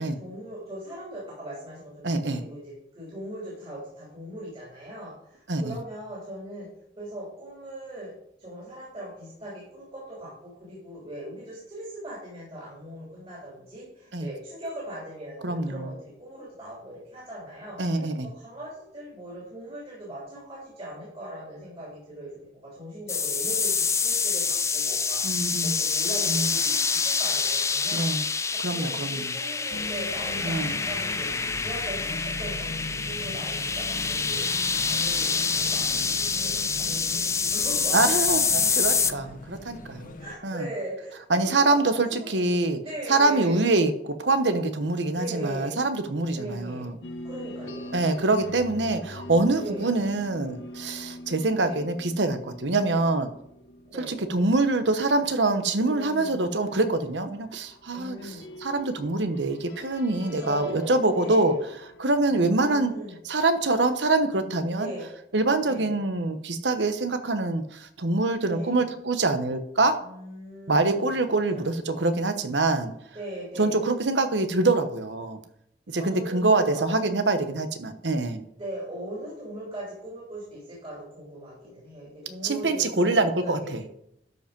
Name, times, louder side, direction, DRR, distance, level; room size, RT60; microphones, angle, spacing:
voice 1, 0.0-6.7 7.0-8.1 8.4-17.8 18.3-28.1 28.5-35.9 36.4-38.0 40.2-43.6 45.1-45.8 46.3-46.9 47.2-47.9 48.7-48.8 49.5-49.9 51.6-51.8 52.8-53.0 53.9-54.1 55.8-56.4 57.9-58.4 60.3-61.6 62.3-63.2 64.7-65.1 65.6-65.9 68.4-68.8 70.0-71.7 73.1-73.8 76.0-76.9 78.6-83.7, right 1 dB, 35° right, -6 dB, 3.8 m, -39 dB
voice 2, 2.0-2.4 5.5-5.8 14.1-14.3 15.4-15.9 17.8-18.3 25.2-25.7 26.3-26.5 27.9-28.2 28.6-29.3 30.4-30.7 37.9-40.1 40.4-40.7 41.3-42.8 43.1-47.0 47.9-53.3 54.0-61.6 62.0-62.9 63.2-64.9 65.3-70.0 70.7-72.9 73.6-75.4 75.9-78.4 82.4-83.8, right 2 dB, 75° right, 9 dB, 1.1 m, -25 dB
sound 1, 23.1-39.1, left 5 dB, 15° left, 0.5 m, -26 dB
sound 2, 29.7-40.4, left 1 dB, 50° left, 0.9 m, -40 dB
sound 3, 47.0-62.9, left 1 dB, 75° left, 1.2 m, -44 dB
12.5 x 5.4 x 5.3 m, 0.75 s
head